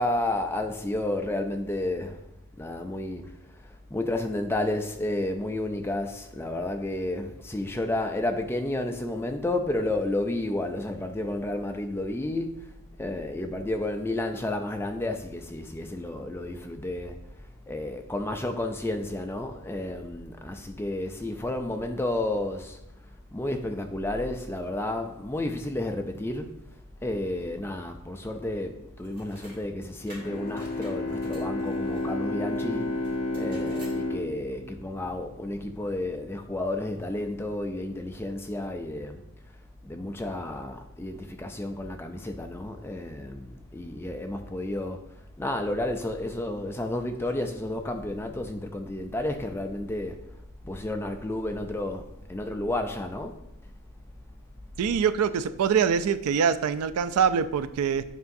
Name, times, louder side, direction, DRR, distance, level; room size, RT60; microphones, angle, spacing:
voice 1, 0.0-2.2 2.6-3.3 3.9-12.7 13.0-17.2 17.7-22.8 23.3-26.6 27.0-39.2 39.8-45.0 45.4-50.2 50.6-53.4, left 1 dB, 10° left, 0.3 m, -31 dB
sound 1, 29.0-29.6 30.1-32.1 33.0-34.0, right 1 dB, 40° right, 2.2 m, -50 dB
Bowed string instrument, 30.2-35.7, left 2 dB, 30° left, 0.9 m, -31 dB
voice 2, 54.8-58.0, right 7 dB, 80° right, 0.3 m, -24 dB
8.1 x 4.8 x 2.6 m
head